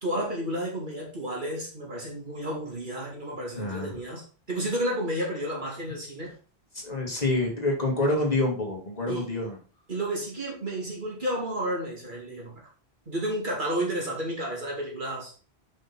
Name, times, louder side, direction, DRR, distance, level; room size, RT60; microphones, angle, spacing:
voice 1, 0.0-6.3 9.1-9.3 9.9-12.6 13.1-15.4, right 1 dB, 50° right, -3 dB, 2.8 m, -31 dB
voice 2, 3.5-4.0 6.7-9.6, left 2 dB, 40° left, 0 dB, 1.9 m, -27 dB
6.3 x 5.4 x 4.1 m, 0.38 s
omnidirectional pair, 1.1 m